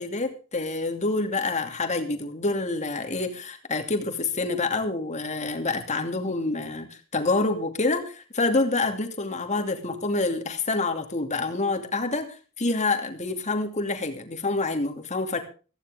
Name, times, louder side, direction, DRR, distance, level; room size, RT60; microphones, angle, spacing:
voice 1, 0.0-15.4, left 3 dB, 35° left, 5 dB, 2.7 m, -27 dB
16.0 x 15.5 x 3.6 m, 0.36 s
head